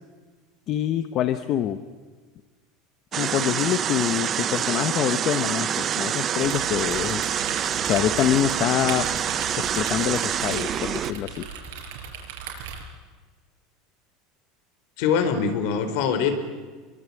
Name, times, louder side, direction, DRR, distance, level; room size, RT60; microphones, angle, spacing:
voice 1, 0.7-1.8 3.2-7.2 7.8-9.1 9.6-11.5, left 11 dB, 35° left, 9 dB, 1.0 m, -25 dB
sound 1, 3.1-11.1, right 9 dB, 25° right, 0.8 m, -26 dB
sound 2, 6.4-12.8, right 6 dB, 80° right, 5.9 m, -37 dB
voice 2, 15.0-16.4, left 6 dB, 60° left, 8 dB, 4.2 m, -23 dB
26.5 x 23.5 x 8.5 m, 1.4 s
cardioid pair, 175°, 0 cm